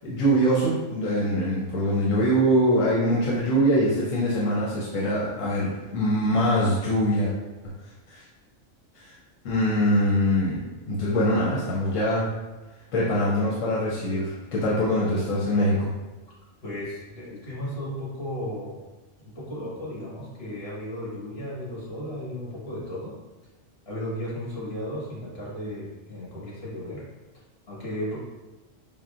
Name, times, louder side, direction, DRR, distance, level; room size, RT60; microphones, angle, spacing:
voice 1, 0.0-7.3 8.1-8.2 8.9-9.1 9.4-12.3 12.9-15.9, equal, 80° left, -6 dB, 1.1 m, -23 dB
voice 2, 16.6-18.8 19.2-23.1 23.8-27.0 27.7-28.2, equal, 50° left, -7 dB, 1.6 m, -35 dB
5.4 x 2.1 x 2.4 m, 1.2 s
omnidirectional pair, 1.3 m